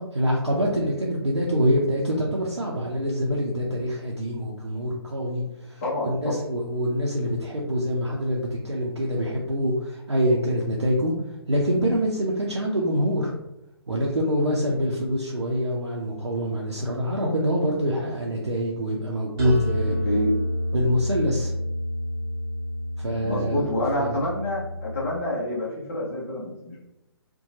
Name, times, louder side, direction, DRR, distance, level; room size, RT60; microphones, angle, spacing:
voice 1, 0.0-11.1 11.5-13.3 13.9-20.0 20.7-21.5 23.0-23.7 24.0-24.2, equal, 80° right, -3 dB, 0.5 m, -25 dB
voice 2, 5.8-6.3 19.8-20.3 23.2-26.9, left 1 dB, 30° left, -6 dB, 0.7 m, -28 dB
sound 1, 19.4-25.2, left 1 dB, 20° right, 1.0 m, -29 dB
2.7 x 2.2 x 2.7 m, 0.90 s
figure-of-eight pair, 135°, 14 cm